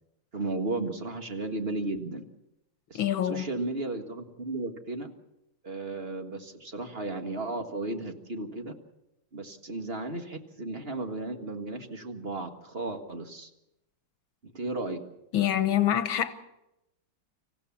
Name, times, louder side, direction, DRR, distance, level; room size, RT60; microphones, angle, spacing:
voice 1, 0.3-2.3 2.9-5.1 5.6-8.7 9.3-13.5 14.4-15.0, right 2 dB, 30° right, 1.7 m, -34 dB
voice 2, 2.9-3.5 15.3-16.3, left 11 dB, 85° left, 1.9 m, -25 dB
26.0 x 15.5 x 7.2 m
omnidirectional pair, 2.2 m